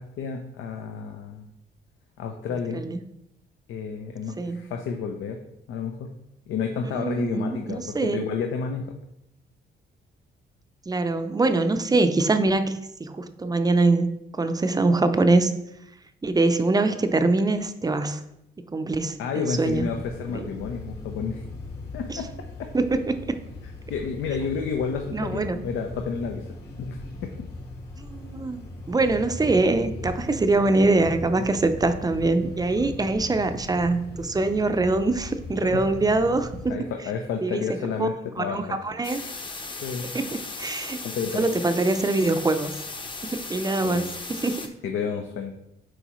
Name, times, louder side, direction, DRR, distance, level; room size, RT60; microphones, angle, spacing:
voice 1, 0.0-1.5 2.2-2.9 3.7-5.4 5.7-6.1 6.5-8.9 19.2-21.4 21.9-22.3 23.9-26.4 26.8-27.3 35.7-35.8 36.7-38.8 39.8-40.1 41.0-41.5 43.8-44.0 44.8-45.5, left 6 dB, 80° left, 4 dB, 0.7 m, -30 dB
voice 2, 6.9-8.2 10.9-15.5 16.2-18.2 18.7-19.9 20.3-20.5 22.1-22.2 22.7-23.3 25.1-25.6 28.1-36.7 37.4-37.6 38.0-38.1 38.4-39.2 40.1-41.0 41.3-42.7 43.2-44.7, right 2 dB, 20° right, 9 dB, 0.5 m, -23 dB
sound 1, 19.6-36.7, left 2 dB, 55° left, 1.8 m, -39 dB
sound 2, 39.0-44.7, left 3 dB, 25° left, 0.8 m, -36 dB
7.8 x 4.6 x 3.1 m, 0.84 s
cardioid pair, 90°, 20 cm